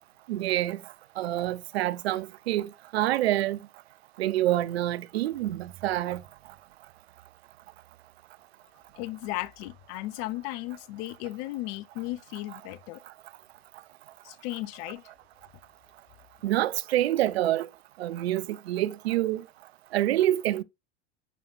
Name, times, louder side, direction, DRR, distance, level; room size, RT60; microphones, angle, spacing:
voice 1, 0.3-0.8 1.2-3.6 4.2-6.2 16.4-17.7 18.0-19.4 19.9-20.6, right 14 dB, 60° right, 0.6 m, -27 dB
voice 2, 9.0-13.0 14.2-15.0, left 18 dB, 40° left, 0.5 m, -35 dB
9.9 x 5.6 x 2.4 m
figure-of-eight pair, 80°, 35 cm